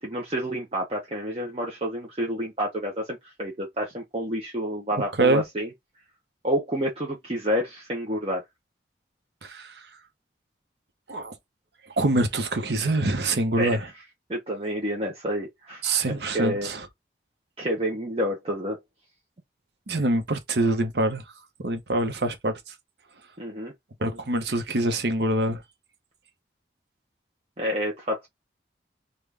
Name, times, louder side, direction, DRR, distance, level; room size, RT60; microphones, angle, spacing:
voice 1, 0.0-5.7 6.4-8.4 13.6-13.8 14.3-15.8 16.1-16.7 17.6-18.8 23.4-23.7 27.6-28.3, equal, 35° right, 0.7 m, -29 dB
voice 2, 9.4-9.8 11.1-11.3 12.0-13.9 15.8-16.9 19.9-21.2 21.6-22.5 24.0-25.6, right 2 dB, 70° right, 0.8 m, -25 dB
3.7 x 2.3 x 3.3 m
head